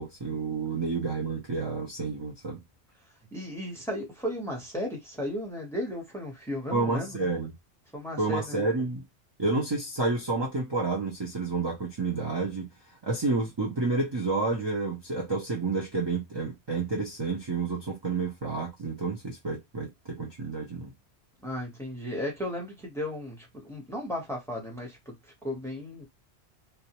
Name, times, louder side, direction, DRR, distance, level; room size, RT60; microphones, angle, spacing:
voice 1, 0.0-2.6 6.7-7.5 8.2-9.0 9.4-12.7 13.0-20.9, right 3 dB, 30° right, 0.5 m, -30 dB
voice 2, 3.3-7.3 7.9-8.6 21.4-25.1 25.4-26.0, left 1 dB, 5° left, 0.8 m, -35 dB
2.3 x 2.0 x 2.8 m
omnidirectional pair, 1.1 m